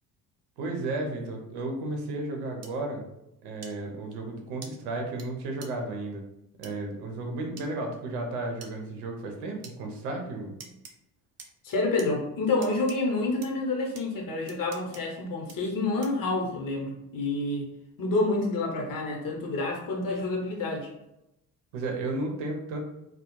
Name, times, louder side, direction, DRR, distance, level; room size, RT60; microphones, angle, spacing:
voice 1, 0.6-3.1 3.4-6.2 6.6-10.6 21.7-22.8, right 2 dB, 70° right, 2 dB, 0.7 m, -33 dB
sound 1, 2.6-2.7 3.6-3.7 4.6-4.7 5.2-5.3 5.6-5.7 6.6-6.7 7.6-7.7 8.6-8.7 9.6-9.8 10.6-10.9 11.4-12.1 12.6-13.0 13.4-13.5 14.0-14.1 14.5-15.0 15.5-15.6 16.0-16.2, right 5 dB, 35° right, 0.5 m, -45 dB
voice 2, 11.6-17.7 18.0-20.9, left 2 dB, 45° left, 1 dB, 0.9 m, -28 dB
2.3 x 2.1 x 3.0 m, 0.85 s
hypercardioid pair, 55°, 46 cm